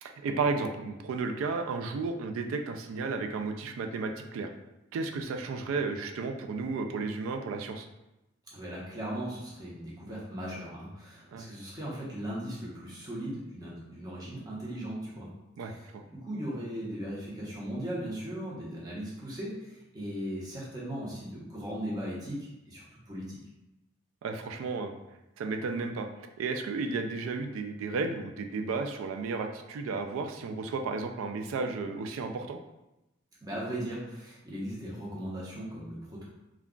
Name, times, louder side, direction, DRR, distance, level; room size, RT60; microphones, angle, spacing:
voice 1, 0.0-4.5 4.9-7.9 11.3-11.5 15.6-16.0 24.2-25.0 25.4-32.6, right 4 dB, 85° right, 5 dB, 0.3 m, -33 dB
voice 2, 8.5-15.3 15.6-15.8 16.1-23.4 33.4-36.2, equal, 20° right, -6 dB, 0.8 m, -38 dB
2.3 x 2.2 x 3.6 m, 0.95 s
head